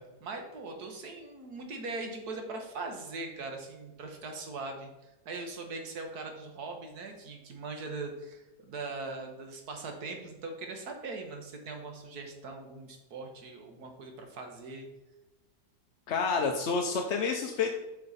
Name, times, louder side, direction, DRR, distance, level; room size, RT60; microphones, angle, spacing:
voice 1, 0.2-14.9, right 3 dB, 70° right, 3 dB, 1.8 m, -41 dB
voice 2, 16.1-17.7, left 5 dB, 55° left, 3 dB, 0.8 m, -29 dB
8.6 x 5.4 x 4.1 m, 1.0 s
omnidirectional pair, 1.8 m